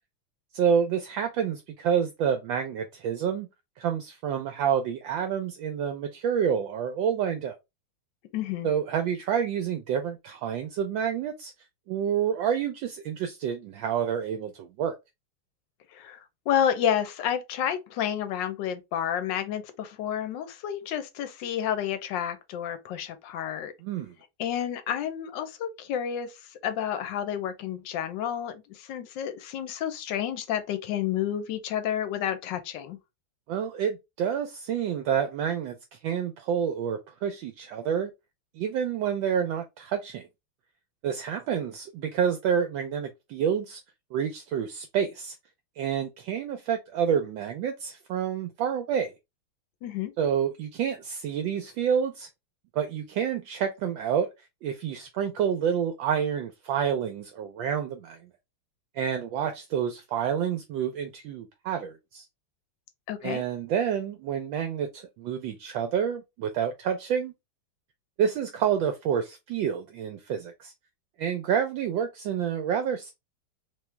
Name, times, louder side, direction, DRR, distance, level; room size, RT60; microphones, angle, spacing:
voice 1, 0.5-3.5 3.8-7.6 8.6-11.5 11.9-15.0 23.8-24.1 33.5-38.1 38.6-40.3 41.0-43.8 44.1-45.4 45.8-49.1 50.2-52.3 52.7-54.3 54.6-58.2 58.9-62.2 63.2-67.3 68.2-70.7 71.2-73.1, right 8 dB, 75° right, 1.2 m, -28 dB
voice 2, 8.3-8.7 15.9-23.7 24.4-26.3 26.6-33.0 49.8-50.1 63.1-63.4, left 9 dB, 70° left, 1.2 m, -30 dB
3.5 x 3.0 x 3.2 m
omnidirectional pair, 2.4 m